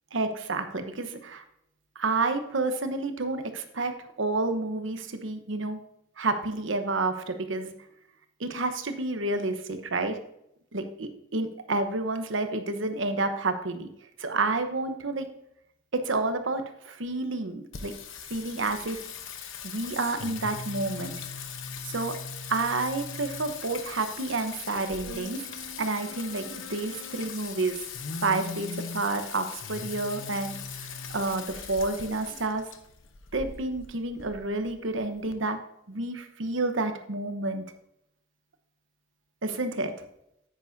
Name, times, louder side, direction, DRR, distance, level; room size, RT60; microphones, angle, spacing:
voice 1, 0.1-1.4 2.0-3.9 4.2-5.8 6.2-7.7 8.4-10.2 10.7-13.9 14.2-15.3 15.9-17.9 18.3-19.0 19.6-21.1 21.8-22.1 22.5-25.5 25.8-27.8 28.2-30.6 30.9-32.7 33.3-35.6 35.9-37.6 39.4-40.0, right 3 dB, 75° right, 7 dB, 1.0 m, -29 dB
Singing, 17.7-35.3, left 5 dB, 80° left, 0.9 m, -39 dB
9.5 x 8.9 x 2.7 m, 0.78 s
head